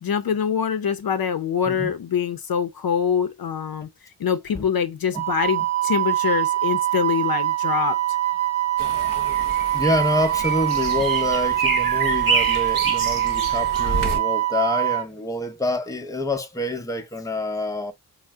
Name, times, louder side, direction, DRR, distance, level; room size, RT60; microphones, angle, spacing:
voice 1, 0.0-3.9 4.2-8.0, left 7 dB, 60° left, 0.5 m, -24 dB
Wind instrument woodwind instrument, 5.1-15.0, right 14 dB, 40° right, 0.4 m, -23 dB
sound 1, 8.8-14.2, right 3 dB, 60° right, 0.9 m, -28 dB
voice 2, 9.7-17.9, left 2 dB, 10° left, 0.6 m, -27 dB
2.6 x 2.0 x 3.3 m
cardioid pair, 50°, 40 cm